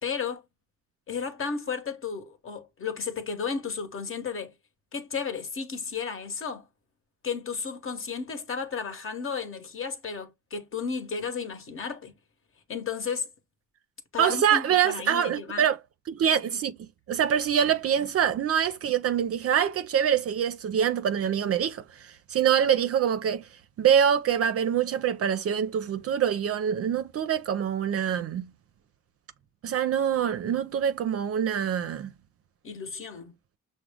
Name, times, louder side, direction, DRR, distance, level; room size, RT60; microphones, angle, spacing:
voice 1, 0.0-0.4 1.1-4.5 4.9-6.6 7.2-12.1 12.7-13.3 14.1-15.7 32.6-33.3, left 6 dB, 45° left, 1.1 m, -33 dB
voice 2, 14.2-15.8 16.1-16.8 17.1-23.5 23.8-28.5 29.6-32.1, right 8 dB, 50° right, 0.5 m, -25 dB
6.0 x 2.1 x 3.4 m
cardioid pair, 90°, 30 cm